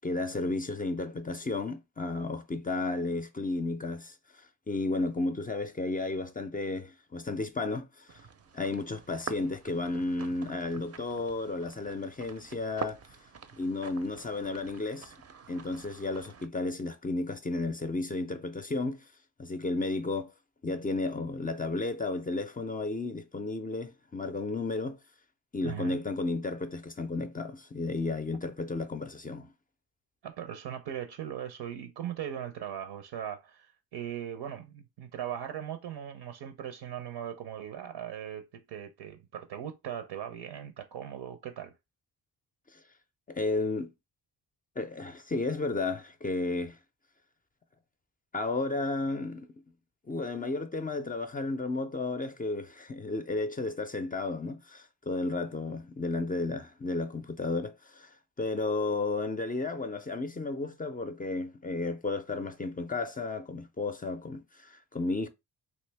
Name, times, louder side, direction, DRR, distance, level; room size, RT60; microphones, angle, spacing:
voice 1, 0.0-8.1 8.5-13.0 13.6-15.1 15.5-19.0 19.4-20.3 20.6-25.0 25.5-29.5 42.7-42.8 43.3-43.9 44.8-46.8 48.3-49.5 50.1-65.3, left 3 dB, 20° left, 0.4 m, -33 dB
sound 1, 8.1-16.5, right 6 dB, 35° right, 0.5 m, -46 dB
voice 2, 25.6-26.0 30.2-41.7, right 10 dB, 80° right, 0.6 m, -39 dB
3.1 x 2.7 x 3.3 m
cardioid pair, 80°, 43 cm